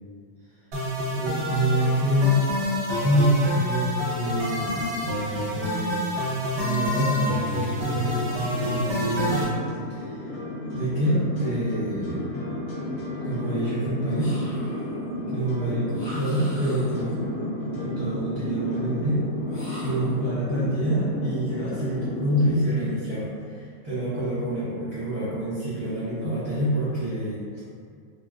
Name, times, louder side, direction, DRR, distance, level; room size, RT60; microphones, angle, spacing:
sound 1, 0.7-9.4, equal, 55° right, 1.0 m, -28 dB
voice 1, 1.1-2.4 3.0-6.3 6.5-9.6 9.9-10.3 10.7-12.3 13.2-14.4 15.3-17.3 17.8-19.2 19.8-27.6, right 1 dB, 25° right, -15 dB, 0.9 m, -26 dB
sound 2, 7.2-22.5, left 1 dB, 75° left, 1.1 m, -33 dB
sound 3, 14.1-14.9 15.9-17.1 19.5-20.2, equal, 30° left, 0.5 m, -42 dB
3.1 x 2.4 x 2.3 m, 2.1 s
omnidirectional pair, 1.5 m